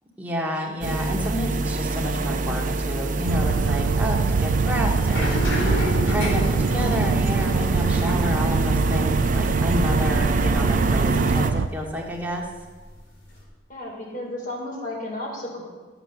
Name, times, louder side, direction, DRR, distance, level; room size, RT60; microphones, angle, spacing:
voice 1, 0.2-12.5, equal, 10° right, -3 dB, 2.1 m, -30 dB
sound 1, 0.8-11.5, right 2 dB, 45° right, 0.7 m, -25 dB
sound 2, 3.3-11.7, right 5 dB, 80° right, 0.4 m, -24 dB
sound 3, 5.1-11.8 12.1-13.4, left 1 dB, 85° left, 4.3 m, -32 dB
voice 2, 13.7-15.6, left 1 dB, 50° left, -2 dB, 4.4 m, -33 dB
14.5 x 8.1 x 6.9 m, 1.4 s
head